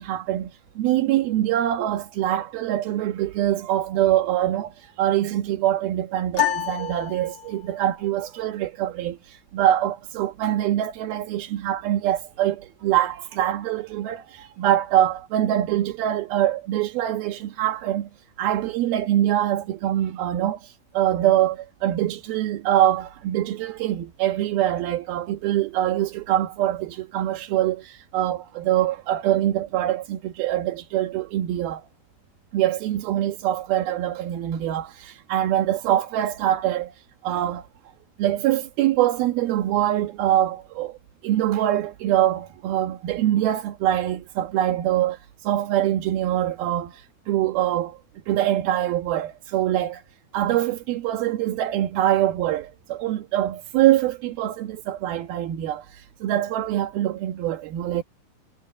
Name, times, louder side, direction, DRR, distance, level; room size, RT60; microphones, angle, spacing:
voice 1, 0.0-18.1 18.4-31.8 32.5-36.9 37.2-37.7 38.2-41.0 41.2-48.0 48.3-50.0 50.3-58.0, right 12 dB, 65° right, 2.9 m, -24 dB
sound 1, 6.3-7.8, left 11 dB, 80° left, 1.1 m, -28 dB
omnidirectional pair, 5.3 m